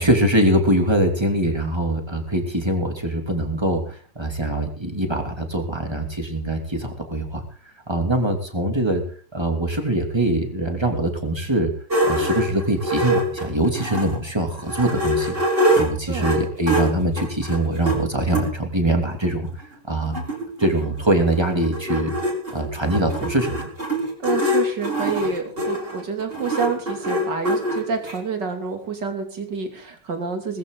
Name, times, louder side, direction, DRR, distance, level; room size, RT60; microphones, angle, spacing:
voice 1, 0.0-7.4 7.9-11.8 12.0-15.4 15.7-19.5 19.9-20.1 20.6-22.2 22.5-23.6, right 1 dB, 15° right, 4 dB, 2.8 m, -23 dB
sound 1, 11.9-14.2 14.6-18.5 19.2-19.3 19.6-19.7 19.9-28.2, equal, 30° right, 4.8 m, -24 dB
voice 2, 24.2-30.6, right 5 dB, 75° right, 4 dB, 3.5 m, -28 dB
19.5 x 15.0 x 4.0 m, 0.42 s
omnidirectional pair, 1.9 m